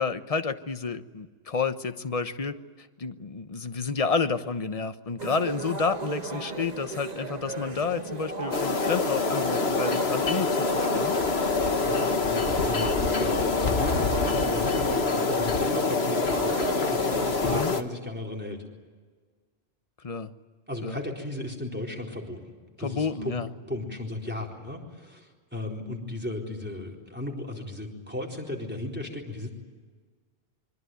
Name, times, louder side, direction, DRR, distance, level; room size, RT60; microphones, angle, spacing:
voice 1, 0.0-11.2 17.4-17.7 20.0-20.3 20.8-21.0 22.8-23.5, left 5 dB, 35° left, 10 dB, 1.1 m, -30 dB
sound 1, 5.2-17.6, right 3 dB, 40° right, 1.7 m, -35 dB
sound 2, 8.5-17.8, left 4 dB, 80° left, 1.7 m, -26 dB
voice 2, 11.8-18.7 20.7-23.4 23.7-29.5, left 1 dB, 10° right, -1 dB, 4.2 m, -35 dB
26.0 x 24.0 x 9.3 m, 1.5 s
omnidirectional pair, 1.0 m